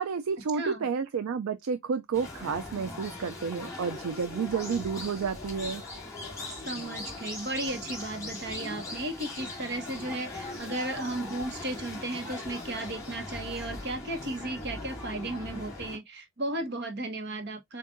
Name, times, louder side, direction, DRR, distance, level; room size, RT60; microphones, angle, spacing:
voice 1, 0.0-5.8, right 6 dB, 70° right, 0.4 m, -31 dB
voice 2, 0.5-0.8 6.5-17.8, right 2 dB, 50° right, 1.2 m, -35 dB
sound 1, 2.1-16.0, left 2 dB, 15° left, 2.1 m, -40 dB
7.4 x 2.5 x 2.5 m
head